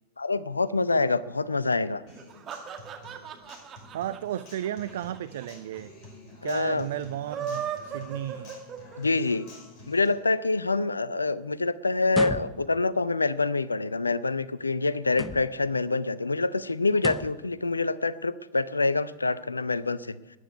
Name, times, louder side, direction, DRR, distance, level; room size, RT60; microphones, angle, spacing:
voice 1, 0.2-2.0 6.4-6.9 9.0-9.5 9.9-20.2, left 3 dB, 80° left, 18 dB, 0.6 m, -26 dB
Human voice / Acoustic guitar, 2.1-10.1, left 2 dB, 40° left, 5.8 m, -49 dB
sound 1, 2.1-5.5 5.7-5.8 6.0-6.1 7.1-9.2, right 8 dB, 30° right, 1.9 m, -36 dB
voice 2, 3.9-5.9 6.4-8.5, right 12 dB, 55° right, 14 dB, 0.5 m, -34 dB
pot lids clattering, 12.1-12.9 15.1-15.7 16.9-17.5, left 3 dB, 15° left, 0.8 m, -35 dB
13.0 x 10.0 x 9.5 m, 1.1 s
figure-of-eight pair, 90°, 0 cm